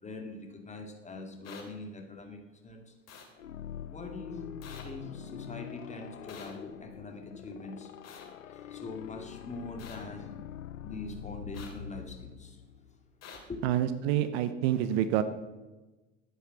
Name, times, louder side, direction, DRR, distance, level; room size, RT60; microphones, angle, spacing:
voice 1, 0.0-2.9 3.8-4.5 4.8-7.9 8.4-10.4 10.8-12.6 13.5-13.7, left 2 dB, 20° left, 3 dB, 2.6 m, -43 dB
sound 1, 1.4-1.6 3.1-3.3 4.6-4.8 6.3-6.5 8.0-8.2 9.8-10.0 11.5-11.7 13.2-13.4, left 6 dB, 40° left, 3.2 m, -47 dB
sound 2, 3.4-13.1, left 9 dB, 85° left, 0.6 m, -44 dB
voice 2, 13.6-15.2, right 11 dB, 55° right, 12 dB, 0.9 m, -27 dB
12.0 x 9.8 x 5.9 m, 1.1 s
figure-of-eight pair, 75°, 38 cm